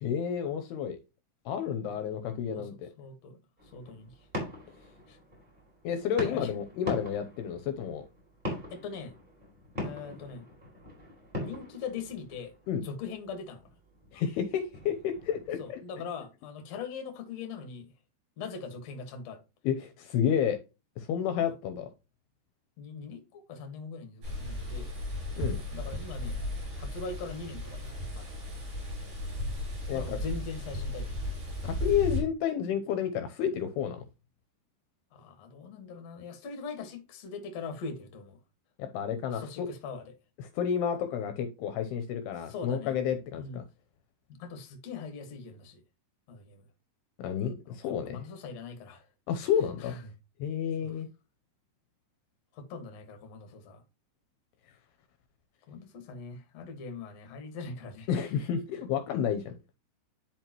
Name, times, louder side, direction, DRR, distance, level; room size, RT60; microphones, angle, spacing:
voice 1, 0.0-1.0 1.5-2.9 5.8-8.1 12.7-12.8 14.1-15.8 19.6-20.6 21.0-21.9 25.4-25.6 29.9-30.2 31.6-34.0 38.8-39.7 40.6-43.6 47.2-48.2 49.3-50.0 50.4-51.1 58.1-59.8, left 8 dB, 80° left, 2.7 m, -30 dB
voice 2, 3.0-3.4 3.7-4.1 5.1-5.2 6.2-6.5 6.8-7.0 8.7-9.1 9.8-10.4 11.4-12.5 12.8-13.7 15.6-17.9 18.4-19.4 21.5-21.6 22.8-24.9 25.7-26.4 26.8-28.3 29.9-31.2 35.1-38.4 39.3-40.1 42.5-43.0 43.3-43.6 44.3-45.8 46.3-46.6 47.7-49.1 49.8-50.0 50.8-51.0 52.5-53.8 55.7-58.1, left 5 dB, 55° left, 2.1 m, -41 dB
sound 1, 3.6-15.7, left 1 dB, 10° right, 3.9 m, -42 dB
sound 2, 24.2-32.2, left 1 dB, 50° right, 6.5 m, -35 dB
11.0 x 5.2 x 3.0 m
omnidirectional pair, 4.9 m